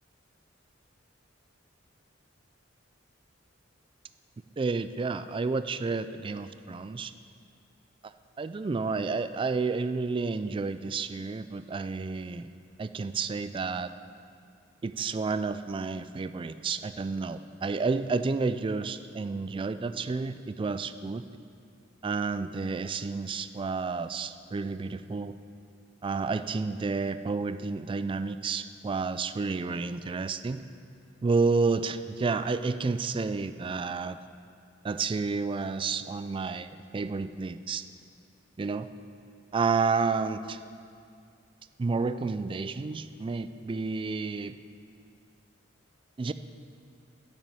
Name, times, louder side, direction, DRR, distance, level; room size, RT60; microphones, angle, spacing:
voice 1, 4.6-7.1 8.0-8.1 8.4-12.5 12.8-13.9 14.8-21.2 22.0-25.4 26.0-30.6 31.2-34.2 34.8-37.8 38.6-38.9 39.5-40.6 41.8-44.5 46.2-46.3, right 4 dB, 25° right, 12 dB, 0.3 m, -30 dB
8.7 x 6.2 x 8.1 m, 2.4 s
head